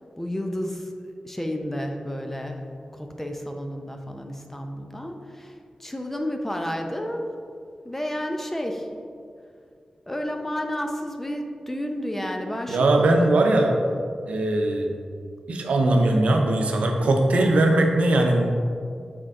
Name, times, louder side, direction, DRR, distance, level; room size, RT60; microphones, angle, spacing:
voice 1, 0.2-2.6 2.9-7.2 7.8-8.9 10.1-13.6, equal, 15° left, 3 dB, 0.7 m, -31 dB
voice 2, 12.7-13.7 14.3-14.9 15.5-18.5, right 2 dB, 90° right, 2 dB, 0.7 m, -20 dB
6.6 x 4.5 x 3.7 m, 2.3 s
cardioid pair, 60°, 2 cm